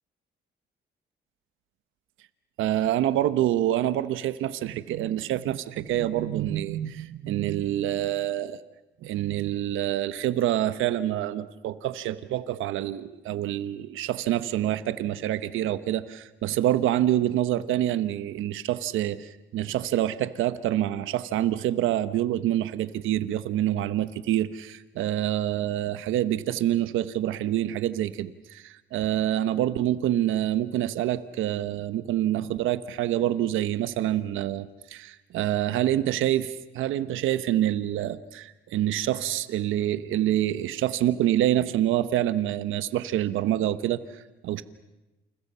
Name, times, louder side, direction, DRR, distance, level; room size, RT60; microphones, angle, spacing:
voice 1, 2.6-8.6 9.0-44.6, right 12 dB, 90° right, 13 dB, 1.2 m, -26 dB
29.5 x 29.0 x 5.6 m, 1.0 s
cardioid pair, 90°, 20 cm